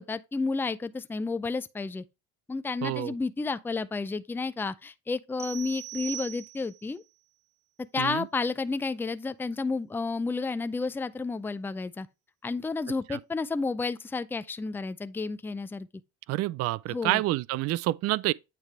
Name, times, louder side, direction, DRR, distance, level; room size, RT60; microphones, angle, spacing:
voice 1, 0.0-2.0 2.5-7.0 7.9-12.1 12.4-15.9 16.9-17.2, left 4 dB, 5° left, 0.4 m, -31 dB
voice 2, 2.8-3.1 8.0-8.3 13.1-13.2 16.3-18.3, right 17 dB, 50° right, 0.4 m, -28 dB
sound 1, 5.4-6.9, right 14 dB, 35° right, 1.3 m, -40 dB
8.9 x 3.4 x 4.7 m
supercardioid pair, 90°, 31 cm